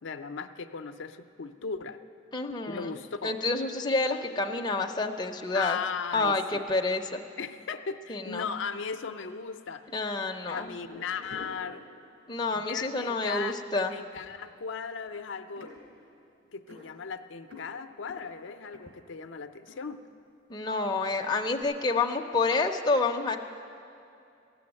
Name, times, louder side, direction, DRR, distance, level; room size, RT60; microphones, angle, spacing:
voice 1, 0.0-2.0 2.7-3.4 5.5-6.3 7.4-9.9 10.5-11.8 12.5-13.6 13.9-15.7 16.5-20.0, left 5 dB, 75° left, 8 dB, 0.5 m, -37 dB
voice 2, 2.3-3.0 3.2-5.8 6.1-7.2 8.1-8.5 9.9-10.7 12.3-13.9 20.5-23.4, left 3 dB, 20° left, 3 dB, 0.5 m, -28 dB
sound 1, 10.8-12.4 13.1-13.3 13.6-20.7 21.0-21.6, left 2 dB, 70° right, 3.7 m, -51 dB
15.0 x 7.0 x 9.7 m, 2.6 s
head